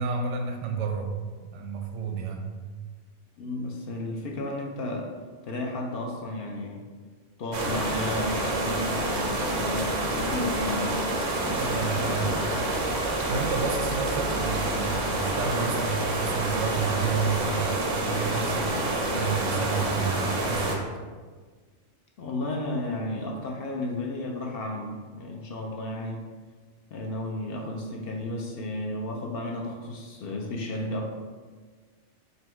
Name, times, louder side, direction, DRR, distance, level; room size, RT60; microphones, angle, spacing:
voice 1, 0.0-2.6 11.6-12.4 13.3-20.8, right 5 dB, 80° right, 3 dB, 0.9 m, -31 dB
voice 2, 3.4-5.1 5.4-6.8 7.4-10.9 11.4-12.5 22.2-26.2 26.9-31.1, left 2 dB, 60° left, 0 dB, 0.6 m, -33 dB
Waterfall in the alps, 7.5-20.8, right 1 dB, 50° right, 0.5 m, -28 dB
4.1 x 2.2 x 4.3 m, 1.5 s
omnidirectional pair, 1.2 m